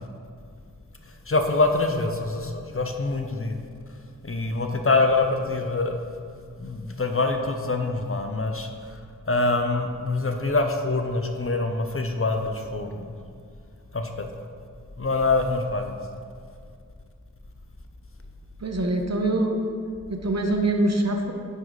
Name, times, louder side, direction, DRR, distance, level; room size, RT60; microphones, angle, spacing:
voice 1, 1.3-3.6 4.2-6.1 6.6-9.0 9.2-13.1 13.9-14.3 15.0-16.0, left 3 dB, 40° left, 5 dB, 0.7 m, -25 dB
voice 2, 18.6-19.6 20.1-21.3, right 2 dB, 55° right, 3 dB, 0.8 m, -24 dB
9.4 x 4.8 x 4.0 m, 2.2 s
wide cardioid pair, 50°, 32 cm